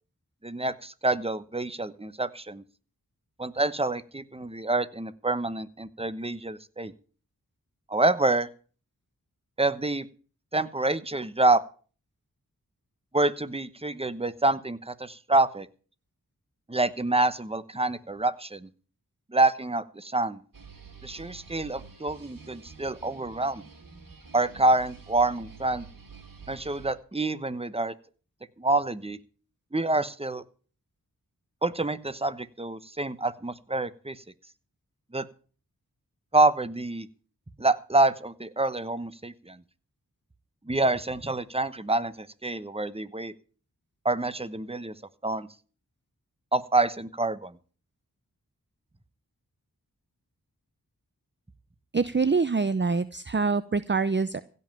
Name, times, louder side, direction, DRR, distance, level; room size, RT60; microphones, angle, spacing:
voice 1, 0.4-2.6 3.4-6.9 7.9-8.5 9.6-10.1 10.5-11.6 13.1-15.7 16.7-18.7 19.3-20.4 21.0-23.6 24.3-25.8 26.5-27.9 28.6-29.2 29.7-30.4 31.6-34.2 35.1-35.3 36.3-37.1 37.6-39.6 40.7-43.3 44.0-44.9 45.2-45.5 46.5-47.5, right 2 dB, 15° right, 13 dB, 1.0 m, -27 dB
sound 1, 20.5-27.0, right 5 dB, 65° right, 3.0 m, -48 dB
voice 2, 51.9-54.4, right 4 dB, 30° right, 13 dB, 0.7 m, -25 dB
16.0 x 5.5 x 9.0 m, 0.41 s
wide cardioid pair, 45°, 36 cm